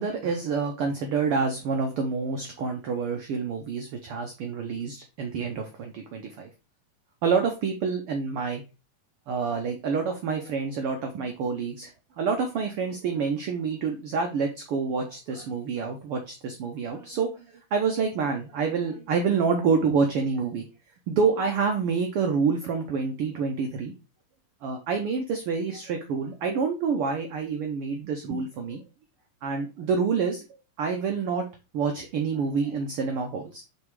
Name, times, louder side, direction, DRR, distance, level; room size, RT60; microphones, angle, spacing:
voice 1, 0.0-6.5 7.2-8.6 9.3-11.9 12.2-17.5 17.7-20.6 21.1-23.9 24.6-28.8 29.4-30.4 30.8-31.4 31.7-33.6, right 5 dB, 85° right, 4 dB, 1.2 m, -27 dB
5.4 x 4.0 x 4.6 m, 0.30 s
omnidirectional pair, 3.5 m